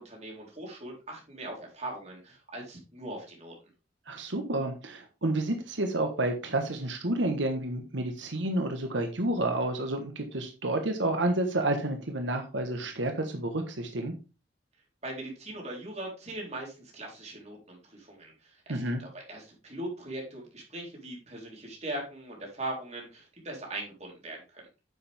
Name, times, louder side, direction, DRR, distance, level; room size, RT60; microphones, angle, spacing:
voice 1, 0.0-3.5 15.0-24.7, right 1 dB, 35° right, -1 dB, 4.1 m, -40 dB
voice 2, 4.1-14.1 18.7-19.0, right 1 dB, 90° right, 5 dB, 1.3 m, -30 dB
9.7 x 7.3 x 3.6 m, 0.31 s
head